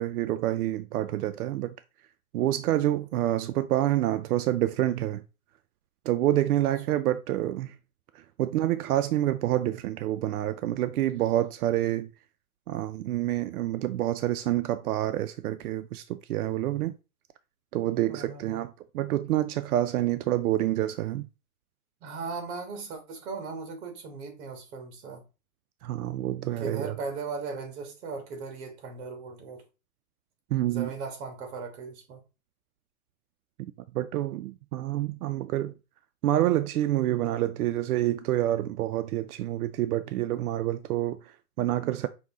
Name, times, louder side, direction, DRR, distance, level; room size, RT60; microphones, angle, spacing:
voice 1, 0.0-1.7 2.3-5.2 6.1-7.8 8.1-12.1 12.7-17.0 17.7-18.7 18.9-21.3 25.8-26.9 30.5-30.9 33.6-35.7 36.2-42.1, right 13 dB, 90° right, 0.5 m, -27 dB
voice 2, 6.6-7.0 17.8-18.6 22.0-25.2 26.6-29.6 30.7-32.2, right 4 dB, 50° right, 1.6 m, -38 dB
5.3 x 2.8 x 3.5 m
supercardioid pair, 155°, 43 cm